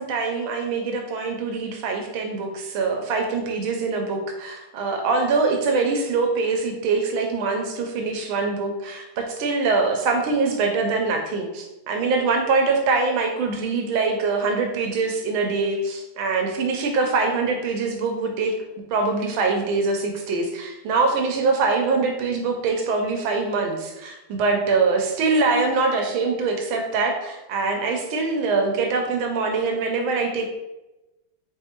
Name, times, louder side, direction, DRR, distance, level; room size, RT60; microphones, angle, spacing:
voice 1, 0.0-18.6 18.9-30.5, right 4 dB, 75° right, 3 dB, 1.3 m, -23 dB
4.2 x 3.5 x 2.8 m, 1.0 s
omnidirectional pair, 2.4 m